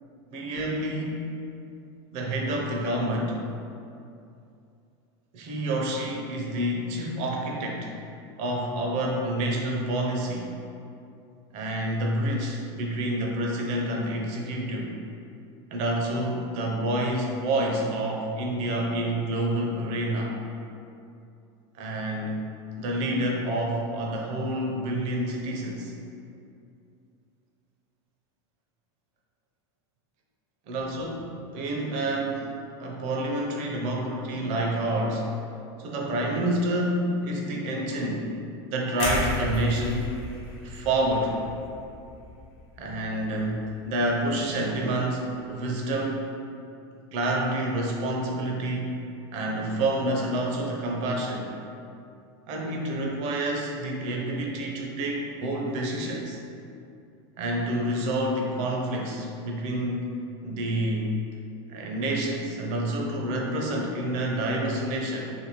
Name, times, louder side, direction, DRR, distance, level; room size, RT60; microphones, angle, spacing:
voice 1, 0.3-1.3 2.1-3.4 5.3-7.9 8.4-10.5 11.5-14.9 15.7-20.3 21.7-22.4 22.8-25.9 30.7-32.3 32.8-35.3 35.8-38.3 38.7-40.1 40.6-41.3 42.8-46.3 47.1-48.9 49.3-51.5 52.5-56.4 57.4-60.1 60.4-61.2 61.7-65.3, right 1 dB, 50° right, 0 dB, 0.6 m, -28 dB
sound 1, 39.0-43.0 43.4-43.6, left 1 dB, 45° left, 0.9 m, -33 dB
2.7 x 2.6 x 3.0 m, 2.6 s
supercardioid pair, 120°, 15 cm